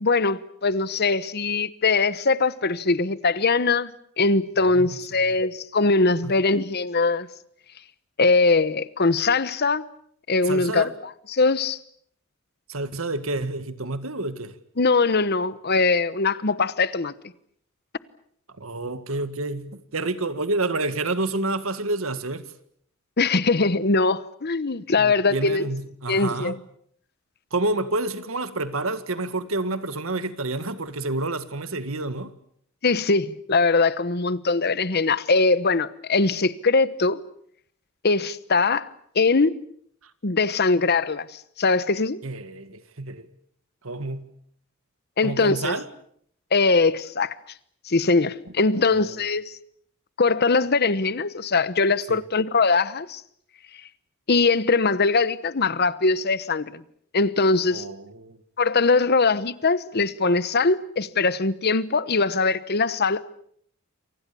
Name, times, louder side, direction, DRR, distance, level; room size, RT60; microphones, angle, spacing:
voice 1, 0.0-3.9 4.2-7.3 8.2-9.8 10.3-10.9 11.3-11.8 14.8-17.1 23.2-25.7 26.1-26.6 32.8-37.2 38.0-38.9 39.1-39.6 40.2-42.2 45.2-45.7 46.5-47.4 47.9-49.6 50.2-53.2 54.3-56.8 57.1-57.9 58.6-63.2, left 3 dB, 50° left, 1.1 m, -21 dB
voice 2, 4.6-5.0 6.2-6.3 10.4-10.9 12.7-14.5 18.6-22.5 25.0-26.6 27.5-32.3 42.2-43.3 43.8-44.3 45.2-45.9 48.8-49.2 52.1-52.2 57.7-58.4, right 2 dB, 85° right, 1.9 m, -29 dB
28.5 x 24.5 x 7.0 m
head